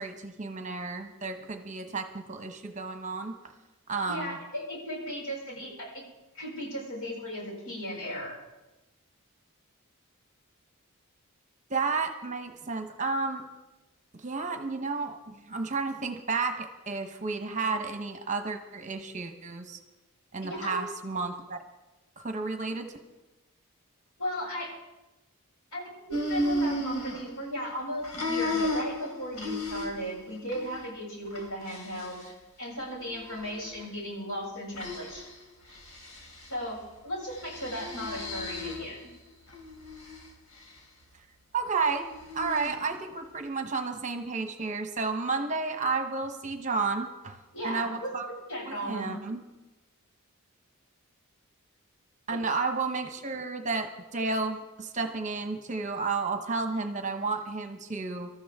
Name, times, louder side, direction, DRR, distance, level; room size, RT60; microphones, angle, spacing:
voice 1, 0.0-3.3 3.9-4.4 11.7-13.4 14.1-19.8 20.3-21.6 22.2-22.9 41.5-42.1 42.3-47.4 47.6-48.3 48.6-49.4 52.3-58.3, right 4 dB, 35° right, 6 dB, 1.1 m, -32 dB
voice 2, 4.0-6.0 6.3-8.4 20.4-20.8 24.2-24.7 25.7-25.9 26.3-32.2 32.6-35.2 36.5-39.0 47.5-49.1 52.3-52.4, equal, 65° left, -3 dB, 7.5 m, -36 dB
sound 1, 26.1-27.7 28.0-30.1 30.5-30.8 31.3-32.3 33.0-33.8 34.8-35.3 35.7-36.5 37.3-39.0 39.5-40.3 42.1-42.8, left 1 dB, 85° left, 3.5 m, -34 dB
26.0 x 13.5 x 3.7 m, 1.0 s
head